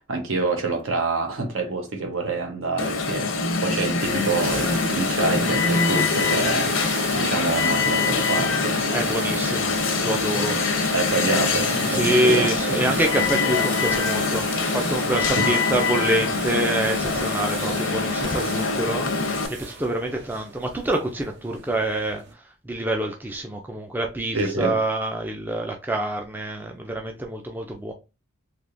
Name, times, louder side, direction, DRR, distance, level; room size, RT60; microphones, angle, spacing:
voice 1, 0.1-8.8 10.9-12.9 15.4-15.5 24.3-24.8, right 3 dB, 80° right, 1.0 m, -27 dB
Alarm, 2.8-19.5, left 4 dB, 80° left, 0.7 m, -24 dB
sound 1, 4.0-22.3, right 5 dB, 60° right, 0.7 m, -36 dB
voice 2, 8.9-9.7 10.0-10.6 11.9-19.1 19.5-22.2 22.7-27.9, right 1 dB, 10° right, 0.3 m, -26 dB
3.4 x 2.8 x 2.5 m
head